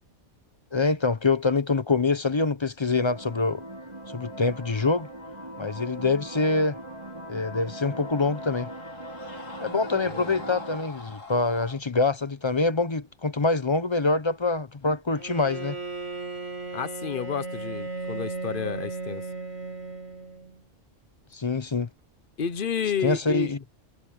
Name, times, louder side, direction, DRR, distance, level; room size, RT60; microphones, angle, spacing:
voice 1, 0.7-3.6 4.1-5.1 5.6-6.8 7.3-8.7 9.6-15.8 21.3-21.9 23.0-23.6, left 3 dB, 25° left, 0.7 m, -25 dB
sound 1, 3.0-10.8, right 1 dB, 25° right, 6.4 m, -40 dB
Screaming, 7.5-11.8, left 2 dB, 85° left, 4.2 m, -45 dB
voice 2, 10.0-10.4 16.7-19.2 22.4-23.5, left 7 dB, 45° left, 1.0 m, -31 dB
Bowed string instrument, 15.2-20.6, right 2 dB, 55° right, 3.3 m, -35 dB
omnidirectional pair, 1.3 m